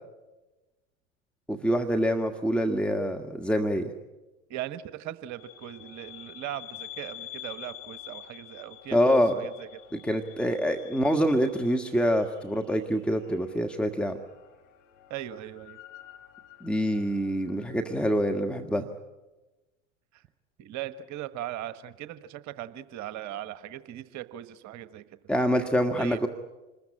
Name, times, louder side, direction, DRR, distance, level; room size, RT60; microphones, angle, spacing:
voice 1, 1.5-3.9 8.9-9.4 10.0-14.2 16.6-18.9 25.3-26.3, equal, 5° left, 5 dB, 1.6 m, -25 dB
voice 2, 4.5-9.7 15.1-15.8 20.1-20.2 20.6-25.0 26.0-26.2, right 12 dB, 45° right, 12 dB, 1.3 m, -39 dB
sound 1, 5.4-18.7, left 13 dB, 70° left, 4.6 m, -48 dB
27.0 x 20.5 x 8.8 m, 1.1 s
hypercardioid pair, 90°, 40 cm